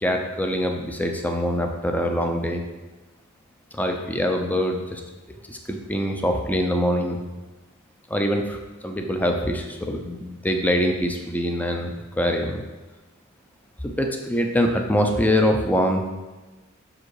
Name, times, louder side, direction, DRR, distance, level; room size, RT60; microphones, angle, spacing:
voice 1, 0.0-2.6 3.7-5.0 5.5-7.2 8.1-8.6 8.8-12.6 14.0-16.0, equal, 10° left, 3 dB, 0.7 m, -24 dB
6.5 x 4.9 x 4.8 m, 1.2 s
head